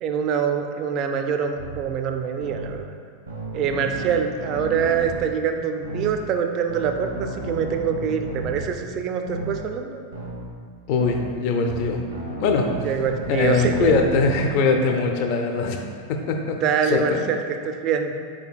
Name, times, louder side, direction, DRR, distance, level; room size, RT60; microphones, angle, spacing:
voice 1, 0.0-2.9 3.5-10.0 12.8-13.9 16.6-18.1, right 7 dB, 35° right, 5 dB, 0.4 m, -25 dB
sound 1, 1.6-1.8 2.4-2.7 3.3-5.2 5.8-6.1 6.7-8.7 9.3-9.5 10.1-10.4 11.0-11.2 11.7-14.5, right 2 dB, 85° right, 1.0 m, -33 dB
voice 2, 10.9-12.0 12.4-12.8 13.3-15.8 16.1-17.2, left 4 dB, 45° left, 3 dB, 0.4 m, -22 dB
4.9 x 4.4 x 2.3 m, 2.2 s
figure-of-eight pair, 90°, 0 cm